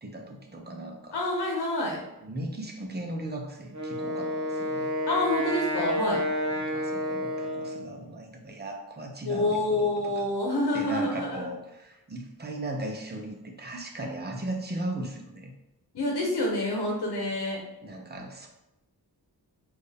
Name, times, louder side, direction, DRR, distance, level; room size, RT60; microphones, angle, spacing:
voice 1, 0.0-1.2 2.2-4.9 6.5-10.3 10.7-15.5 17.8-18.5, right 1 dB, 25° right, 2 dB, 0.8 m, -37 dB
voice 2, 1.1-2.0 5.1-6.2 9.3-11.4 15.9-17.6, left 1 dB, 80° left, -2 dB, 0.9 m, -27 dB
Wind instrument woodwind instrument, 3.7-8.0, equal, 50° right, 0.8 m, -30 dB
4.4 x 2.6 x 3.5 m, 0.90 s
wide cardioid pair, 90°, 39 cm